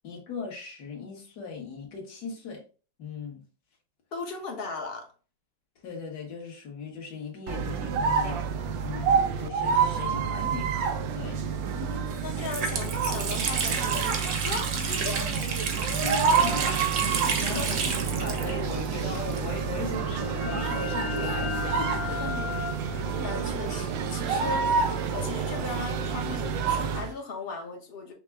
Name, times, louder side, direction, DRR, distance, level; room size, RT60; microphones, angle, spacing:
voice 1, 0.0-2.6 3.0-3.4 5.8-10.9 11.1-11.4 15.9-22.2, left 5 dB, 60° left, 1.8 m, -38 dB
voice 2, 4.1-5.1 11.7-15.3 17.5-17.7 22.0-24.7 25.1-28.1, left 4 dB, 40° left, 0.9 m, -37 dB
sound 1, 7.5-27.1, right 6 dB, 90° right, 1.3 m, -28 dB
Water tap faucet, 11.6-11.7 12.1-19.8 20.1-20.2 21.0-22.6, right 5 dB, 60° right, 1.2 m, -32 dB
sound 2, 19.7-25.2, left 8 dB, 85° left, 1.4 m, -37 dB
5.7 x 2.1 x 3.4 m
omnidirectional pair, 2.0 m